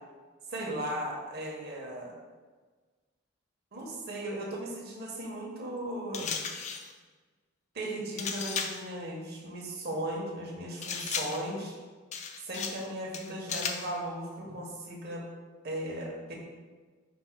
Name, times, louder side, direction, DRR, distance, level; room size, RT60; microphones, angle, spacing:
voice 1, 0.5-2.1 3.7-6.3 7.7-11.7 12.4-15.2 15.6-16.4, right 1 dB, 55° right, -2 dB, 1.0 m, -37 dB
sound 1, 6.1-6.9 8.2-8.9 10.8-11.5 12.1-12.9 13.1-13.9, left 6 dB, 35° left, 0.3 m, -35 dB
5.1 x 2.1 x 4.4 m, 1.4 s
head